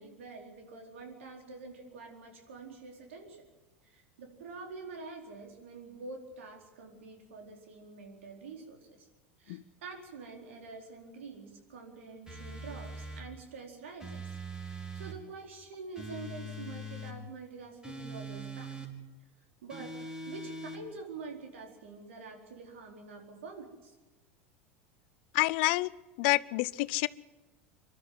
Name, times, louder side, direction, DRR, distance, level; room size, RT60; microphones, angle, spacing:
voice 1, 0.0-3.4 3.8-9.1 9.4-14.2 14.6-18.8 19.6-19.9 20.3-23.9, right 4 dB, 80° right, 2 dB, 4.3 m, -46 dB
sound 1, 12.3-13.3 14.0-15.2 15.9-17.2 17.8-18.9 19.7-20.8, right 1 dB, 10° right, 4.4 m, -42 dB
voice 2, 25.3-25.9 26.2-27.1, left 21 dB, 65° left, 19 dB, 0.6 m, -27 dB
25.5 x 12.5 x 9.4 m, 1.2 s
hypercardioid pair, 90°, 7 cm